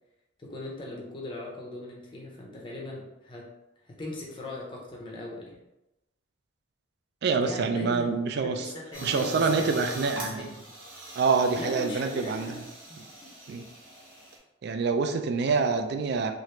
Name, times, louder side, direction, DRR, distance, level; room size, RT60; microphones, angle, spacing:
voice 1, 0.4-3.5 3.8-5.6 7.4-8.2 8.6-10.7 11.6-12.6 12.9-13.3, left 2 dB, 25° left, -1 dB, 0.5 m, -39 dB
voice 2, 7.2-8.7 9.0-10.5 11.2-12.6 13.5-13.7 14.6-16.3, right 4 dB, 55° right, 6 dB, 0.3 m, -26 dB
sound 1, 8.9-14.4, right 1 dB, 85° right, 1.1 m, -42 dB
3.0 x 2.5 x 3.1 m, 0.94 s
head